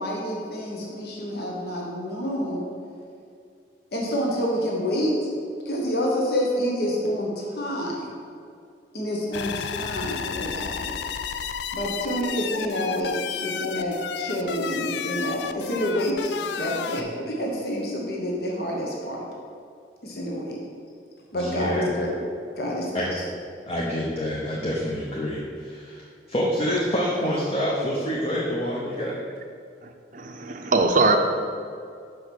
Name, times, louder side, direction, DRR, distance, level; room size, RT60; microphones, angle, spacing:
voice 1, 0.0-2.7 3.9-5.3 5.6-8.1 8.9-10.9 11.7-13.2 13.4-19.2 20.0-20.6 21.3-22.2 22.6-23.1, equal, 60° left, -2 dB, 1.1 m, -28 dB
sound 1, 9.3-17.0, left 7 dB, 75° left, 0.3 m, -32 dB
voice 2, 21.3-21.9 22.9-23.2 23.7-29.2, equal, 35° left, -4 dB, 0.8 m, -27 dB
voice 3, 29.8-31.2, right 3 dB, 45° right, 5 dB, 0.6 m, -22 dB
5.7 x 5.1 x 6.0 m, 2.3 s
head